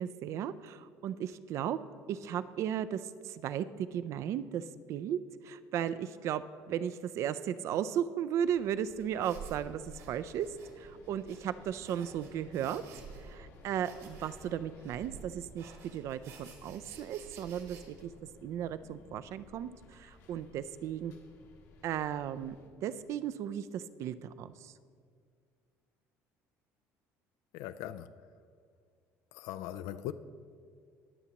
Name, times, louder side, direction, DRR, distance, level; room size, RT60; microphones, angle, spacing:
voice 1, 0.0-1.8 2.1-5.2 5.4-10.5 10.8-12.8 13.2-18.1 18.4-21.1 21.8-22.6 22.8-24.7, right 9 dB, 55° right, 0.4 m, -35 dB
sound 1, 8.4-22.7, left 4 dB, 65° left, 1.3 m, -59 dB
sound 2, 9.0-17.8, right 5 dB, 70° right, 2.1 m, -52 dB
voice 2, 27.5-28.3 29.3-30.1, left 12 dB, 85° left, 0.4 m, -40 dB
20.5 x 7.1 x 2.9 m
cardioid pair, 140°, 6 cm